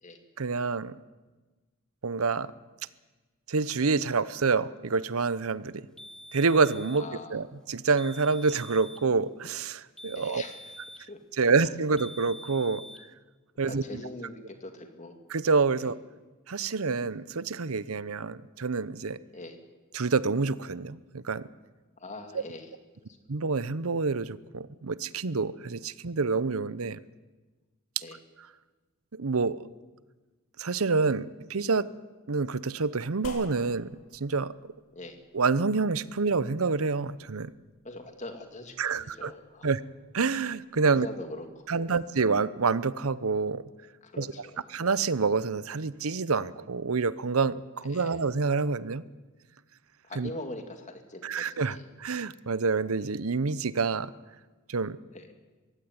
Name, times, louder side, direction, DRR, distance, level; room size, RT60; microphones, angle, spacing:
voice 1, 0.4-1.0 2.0-2.5 3.5-5.8 6.3-7.1 7.3-10.4 11.4-12.8 13.6-13.8 15.3-16.0 16.5-19.2 19.9-21.5 23.3-27.0 29.1-29.6 30.6-31.9 32.3-34.5 35.3-37.5 38.8-39.3 39.6-39.8 40.1-41.1 41.7-43.6 44.2-44.3 44.7-49.0 50.2-50.3 51.2-54.1 54.7-55.0, right 4 dB, 90° right, 17 dB, 0.8 m, -27 dB
sound 1, 6.0-7.1 8.0-9.1 10.0-11.1 12.0-13.1, equal, 5° left, 1.0 m, -46 dB
voice 2, 7.0-7.4 10.1-10.7 11.1-11.2 11.6-11.7 13.5-15.2 15.8-15.9 19.3-19.6 22.0-22.8 28.0-28.2 34.9-35.2 37.8-39.7 40.9-42.0 44.0-44.6 47.9-48.2 50.1-51.9 55.1-55.3, left 2 dB, 35° left, 6 dB, 2.6 m, -42 dB
sound 2, 33.2-42.0, left 2 dB, 75° left, 2.5 m, -52 dB
22.5 x 16.0 x 9.6 m, 1.3 s
head